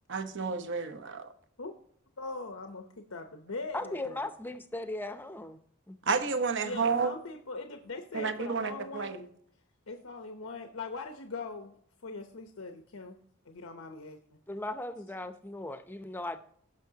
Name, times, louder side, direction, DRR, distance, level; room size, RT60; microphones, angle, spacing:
voice 1, 0.1-1.3 6.0-7.1 8.1-9.3, right 5 dB, 60° right, 9 dB, 0.9 m, -31 dB
voice 2, 2.2-4.3 6.6-9.1 9.9-11.7 12.0-13.2 13.4-14.4, left 3 dB, 85° left, 5 dB, 0.9 m, -41 dB
voice 3, 3.7-5.6 5.9-6.0 14.5-16.4, left 2 dB, 10° left, 9 dB, 0.6 m, -37 dB
16.0 x 6.4 x 2.8 m, 0.63 s
head